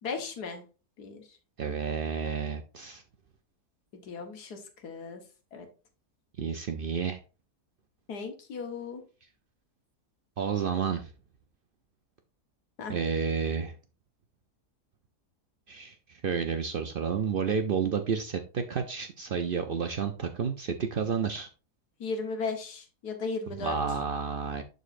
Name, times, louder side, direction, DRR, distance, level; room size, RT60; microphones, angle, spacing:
voice 1, 0.0-0.6 1.0-1.4 3.9-5.2 5.5-5.7 8.1-9.0 12.8-13.0 22.0-23.8, left 4 dB, 85° left, 5 dB, 1.8 m, -36 dB
voice 2, 1.6-3.0 6.4-7.2 10.4-11.1 12.9-13.7 15.7-21.5 23.6-24.6, right 6 dB, 75° right, 6 dB, 0.5 m, -30 dB
11.0 x 4.0 x 2.5 m, 0.34 s
omnidirectional pair, 1.6 m